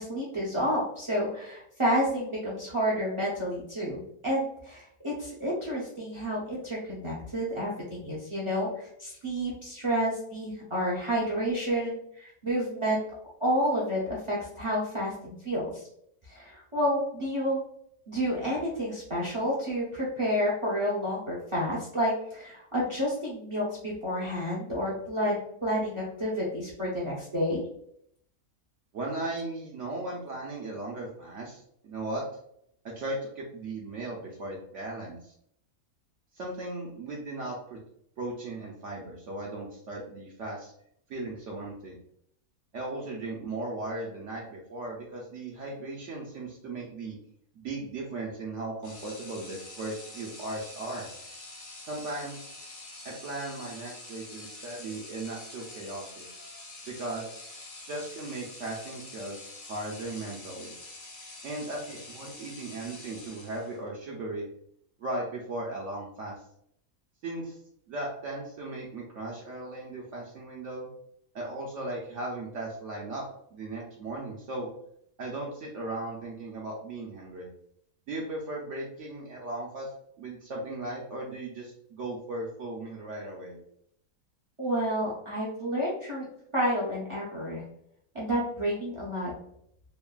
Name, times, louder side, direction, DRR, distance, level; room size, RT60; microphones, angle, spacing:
voice 1, 0.0-13.0 13.4-15.8 16.3-17.6 18.1-27.6 84.6-86.3 86.5-87.6 88.1-89.3, equal, 45° right, -6 dB, 0.4 m, -30 dB
voice 2, 28.9-32.2 33.0-35.3 36.3-37.8 38.2-40.7 41.1-42.0 42.7-47.2 47.5-51.1 51.9-52.5 53.0-56.3 57.0-57.4 57.7-60.7 61.4-64.5 65.0-66.4 67.2-67.6 67.9-70.9 71.3-73.2 73.5-74.7 75.2-77.5 78.1-79.9 80.2-83.6, right 2 dB, 65° right, -2 dB, 0.8 m, -37 dB
sound 1, 48.8-63.9, left 2 dB, 70° left, 1.2 m, -46 dB
3.1 x 2.1 x 2.2 m, 0.71 s
omnidirectional pair, 1.6 m